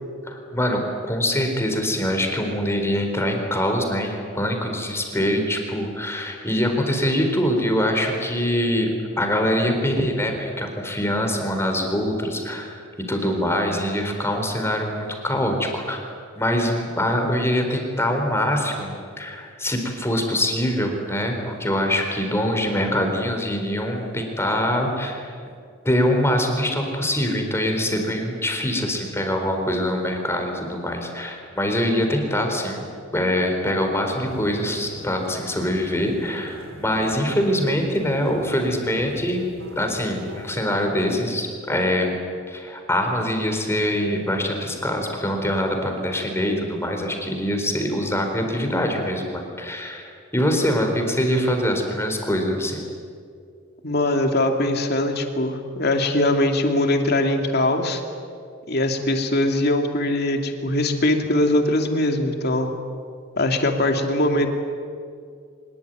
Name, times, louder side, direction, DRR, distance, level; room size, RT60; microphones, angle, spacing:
voice 1, 0.2-8.9 9.2-12.7 13.1-16.0 16.4-25.3 25.8-32.8 33.1-39.4 39.7-42.2 42.5-52.8, equal, 15° left, 3 dB, 4.2 m, -24 dB
sound 1, 34.3-40.7, right 1 dB, 85° right, 3.2 m, -41 dB
voice 2, 53.8-58.0 58.7-62.7 63.4-64.5, left 1 dB, 55° left, 4 dB, 2.8 m, -21 dB
24.5 x 21.5 x 9.3 m, 2.2 s
head